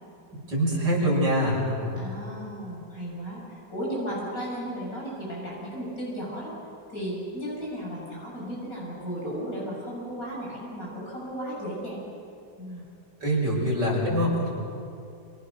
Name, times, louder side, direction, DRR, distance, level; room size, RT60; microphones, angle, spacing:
voice 1, 0.5-1.9 13.2-14.5, equal, 75° right, -3 dB, 7.2 m, -24 dB
voice 2, 2.0-6.5 6.9-12.0 12.6-12.8, equal, 50° left, -4 dB, 7.8 m, -35 dB
27.5 x 27.5 x 6.8 m, 2.6 s
omnidirectional pair, 1.9 m